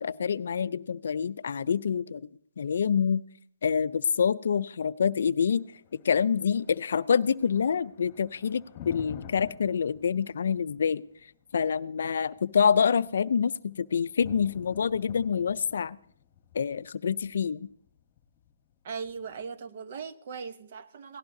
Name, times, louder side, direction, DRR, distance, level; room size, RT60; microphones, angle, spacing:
voice 1, 0.0-2.2 2.6-3.2 3.6-5.6 5.9-11.0 11.5-16.0 16.5-17.7, left 7 dB, 65° left, 0.4 m, -26 dB
Thunder, 5.4-19.4, left 9 dB, 30° left, 1.2 m, -50 dB
voice 2, 18.8-21.2, right 5 dB, 45° right, 0.8 m, -39 dB
17.5 x 16.0 x 2.7 m
hypercardioid pair, 155°, 0 cm